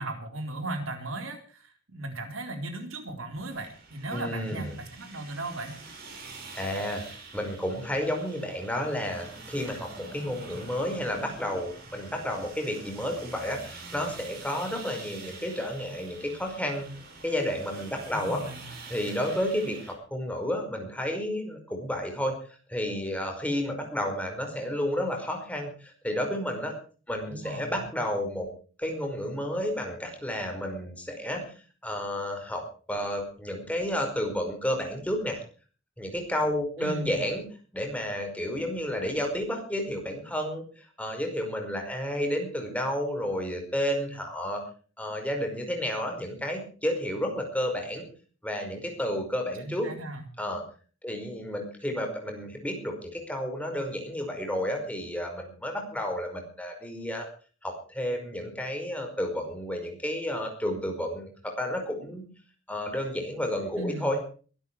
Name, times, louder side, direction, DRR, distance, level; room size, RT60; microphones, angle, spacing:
voice 1, 0.0-5.8 18.1-18.7 27.3-27.8 36.8-37.2 49.6-50.3 63.7-64.1, right 2 dB, 85° right, 5 dB, 4.0 m, -37 dB
sound 1, 3.5-19.9, right 3 dB, 50° right, 5.7 m, -46 dB
voice 2, 4.1-4.7 6.5-7.0 7.3-16.9 17.2-18.4 18.9-22.4 22.7-26.7 27.1-28.5 28.8-31.5 31.8-32.6 32.9-35.4 36.0-37.4 37.7-44.6 45.0-48.1 48.4-49.9 50.4-50.6 51.0-57.3 57.6-62.3 62.7-64.2, equal, 5° left, 3 dB, 5.1 m, -31 dB
22.5 x 12.5 x 4.7 m, 0.40 s
head